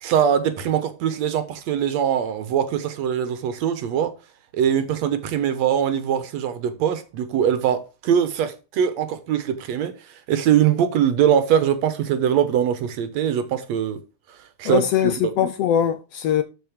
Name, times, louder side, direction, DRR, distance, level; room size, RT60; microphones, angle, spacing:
voice 1, 0.0-4.1 4.5-14.0 14.6-15.2, right 9 dB, 70° right, 2.3 m, -22 dB
voice 2, 14.6-16.4, left 10 dB, 70° left, 1.6 m, -21 dB
13.0 x 5.4 x 5.1 m
omnidirectional pair, 3.4 m